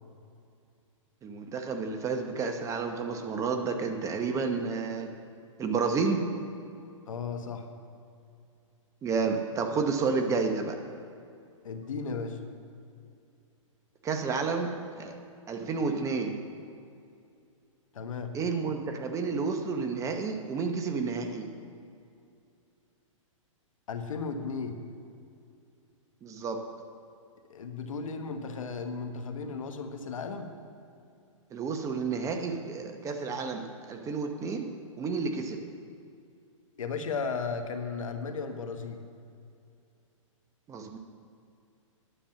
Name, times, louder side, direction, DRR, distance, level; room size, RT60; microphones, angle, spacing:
voice 1, 1.2-5.1 5.6-6.2 9.0-10.8 14.0-15.2 15.5-16.4 18.3-21.5 26.2-26.6 31.5-34.7 35.0-35.6 40.7-41.0, right 4 dB, 20° right, 5 dB, 0.8 m, -30 dB
voice 2, 7.1-7.7 11.6-12.4 17.9-18.3 23.9-24.8 27.5-30.5 36.8-39.0, left 5 dB, 75° left, 6 dB, 1.2 m, -35 dB
9.9 x 7.1 x 7.5 m, 2.5 s
hypercardioid pair, 130°, 17 cm